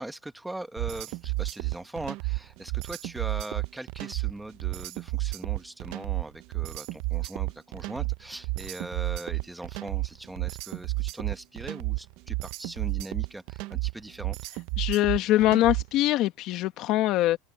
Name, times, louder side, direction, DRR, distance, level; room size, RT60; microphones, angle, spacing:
voice 1, 0.0-14.4, right 1 dB, 5° right, 1.1 m, -40 dB
sound 1, 0.8-16.0, right 22 dB, 55° right, 0.6 m, -31 dB
voice 2, 14.8-17.4, left 15 dB, 50° left, 1.4 m, -23 dB
open air
supercardioid pair, 140°, 0 cm